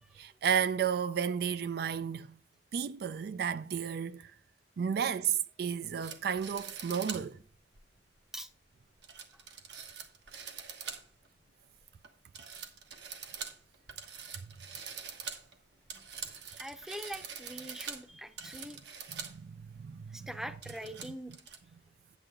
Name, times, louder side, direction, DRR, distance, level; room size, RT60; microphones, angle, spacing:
voice 1, 0.2-2.3 2.7-4.3 4.8-7.4 14.4-14.5 19.1-20.3, right 7 dB, 60° right, 0.3 m, -33 dB
sound 1, 6.0-7.3 7.8-7.9 9.0-11.3 11.6-12.1 12.3-19.4 19.8-19.9 20.3-21.6, right 6 dB, 80° right, 1.3 m, -44 dB
voice 2, 16.6-18.8 20.1-21.3, equal, 5° right, 0.6 m, -43 dB
8.7 x 8.4 x 3.7 m
head